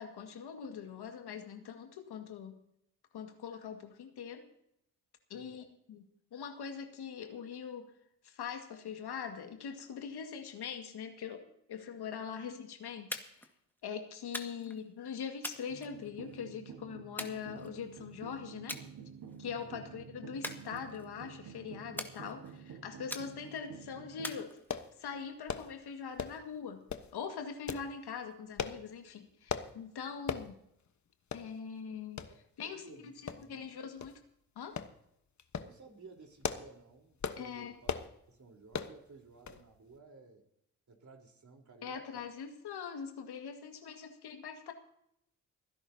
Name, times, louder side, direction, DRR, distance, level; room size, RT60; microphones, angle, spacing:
voice 1, 0.0-2.6 3.1-4.4 5.3-6.0 6.3-7.9 8.2-13.5 13.8-18.8 19.4-24.6 25.0-26.8 27.1-30.5 31.3-32.2 32.6-34.1 34.6-34.8 37.4-37.8 41.8-44.7, left 7 dB, 65° left, 5 dB, 2.0 m, -42 dB
voice 2, 5.3-5.7 19.6-20.0 32.2-33.9 35.6-40.4 40.9-42.3, right 4 dB, 45° right, 2 dB, 4.0 m, -56 dB
sound 1, 13.1-13.5 14.3-14.8 15.4-16.4 17.2-18.0 18.7-18.9 19.3-19.6 20.4-21.2 22.0-22.6 23.1-23.7 24.2-25.0, left 1 dB, 5° left, 1.8 m, -43 dB
sound 2, 15.7-24.4, right 7 dB, 60° right, 1.6 m, -50 dB
sound 3, 24.7-24.9 25.5-25.7 26.2-26.4 26.9-27.1 27.7-27.9 28.6-28.8 29.5-29.7 30.3-30.5 30.9-31.0 31.3-31.5 32.2-32.3 33.3-33.6 34.0-34.1 34.8-34.9 35.4-35.7 36.2-36.7 37.2-37.4 37.8-38.1 38.7-38.9 39.5-39.6 39.9-40.0, left 6 dB, 45° left, 1.3 m, -37 dB
29.0 x 11.0 x 2.8 m, 0.77 s
hypercardioid pair, 45°, 41 cm